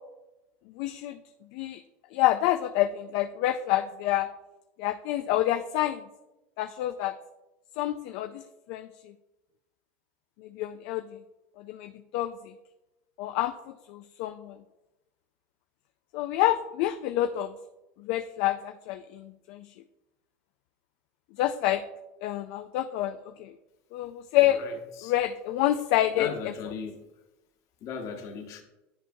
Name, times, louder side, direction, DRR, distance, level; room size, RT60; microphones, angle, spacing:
voice 1, 0.8-1.2 1.5-1.8 2.1-4.3 4.8-6.0 6.6-7.1 7.8-8.4 8.7-8.9 10.4-11.0 11.6-12.3 13.2-13.5 13.9-14.6 16.1-17.5 18.0-19.7 21.4-21.8 22.2-23.5 23.9-24.6 25.0-26.3, left 14 dB, 65° left, 8 dB, 0.3 m, -27 dB
voice 2, 24.4-25.1 26.1-27.0 27.8-28.6, left 6 dB, 50° left, 5 dB, 1.1 m, -38 dB
10.0 x 4.4 x 2.7 m, 0.99 s
supercardioid pair, 125°, 7 cm